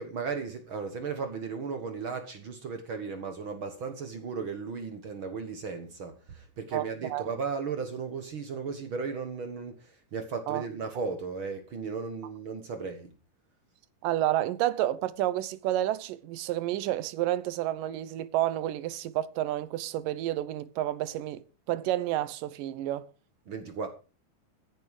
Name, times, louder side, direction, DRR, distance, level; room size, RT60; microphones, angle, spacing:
voice 1, 0.0-13.1 23.5-23.9, right 5 dB, 50° right, 1.8 m, -35 dB
voice 2, 14.0-21.4 21.7-23.1, right 13 dB, 85° right, 2.5 m, -30 dB
15.5 x 10.0 x 4.9 m
omnidirectional pair, 3.8 m